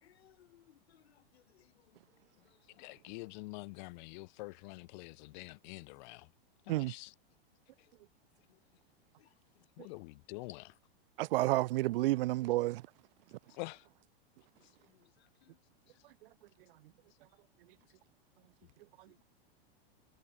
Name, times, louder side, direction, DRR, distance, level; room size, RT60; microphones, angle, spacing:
voice 1, 0.0-1.7 2.4-2.5 9.2-9.3 9.9-10.0 15.0-15.1 15.5-15.6, left 12 dB, 85° left, 3.6 m, -65 dB
voice 2, 2.7-6.3 6.7-7.1 9.8-10.7 13.5-13.9, left 26 dB, 50° left, 4.0 m, -46 dB
voice 3, 11.2-12.8, right 18 dB, 65° right, 0.5 m, -30 dB
supercardioid pair, 155°, 31 cm